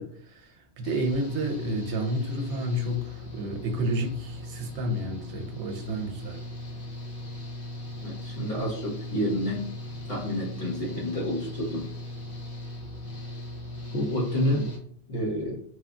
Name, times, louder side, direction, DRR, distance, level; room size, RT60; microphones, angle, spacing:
voice 1, 0.0-6.4, right 1 dB, 75° right, 4 dB, 0.9 m, -31 dB
Engine / Mechanical fan, 0.8-14.8, left 1 dB, 55° left, 0.9 m, -38 dB
voice 2, 8.0-9.7 10.1-11.9 13.9-14.7 15.1-15.5, equal, 30° left, -6 dB, 0.9 m, -29 dB
3.0 x 2.3 x 2.5 m, 0.64 s
omnidirectional pair, 1.2 m